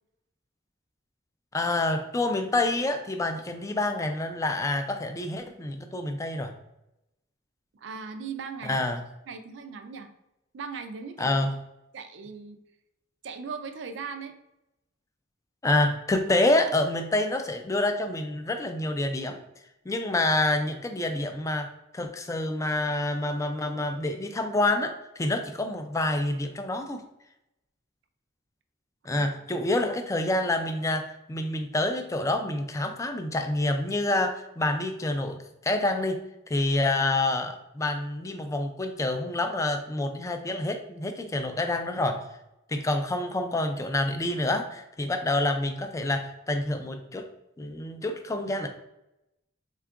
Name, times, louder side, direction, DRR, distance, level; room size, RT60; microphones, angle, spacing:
voice 1, 1.5-6.5 8.6-9.0 11.2-11.5 15.6-19.4 19.9-27.0 29.1-36.2 36.5-42.2 42.7-47.3 47.6-48.7, left 2 dB, 15° left, 6 dB, 0.3 m, -27 dB
voice 2, 7.7-8.8 9.3-10.1 10.5-11.5 11.9-12.6 13.2-14.3 29.1-29.3, right 5 dB, 65° right, 7 dB, 0.4 m, -38 dB
3.6 x 2.3 x 3.4 m, 0.89 s
head